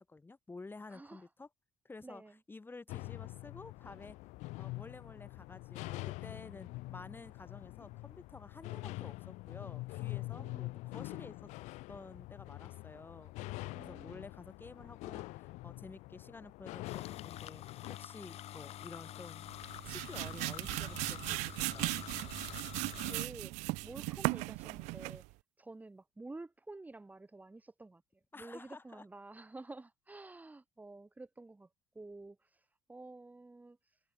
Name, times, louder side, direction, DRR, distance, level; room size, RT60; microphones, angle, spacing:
voice 1, 0.0-1.5 1.8-2.2 2.5-4.2 4.6-11.5 11.9-13.3 13.8-19.5 19.8-21.9 28.3-29.0, left 3 dB, 15° left, 6.4 m, -51 dB
voice 2, 0.9-1.3 2.0-2.4 10.2-10.7 13.7-14.2 23.0-25.2 25.6-28.0 28.4-31.7 31.9-34.0, right 2 dB, 15° right, 2.8 m, -50 dB
sound 1, 2.9-18.0, left 21 dB, 80° left, 1.5 m, -45 dB
sound 2, 16.8-23.3, left 13 dB, 60° left, 3.2 m, -47 dB
sound 3, 19.5-25.3, right 26 dB, 85° right, 0.5 m, -37 dB
cardioid pair, 105°, 12 cm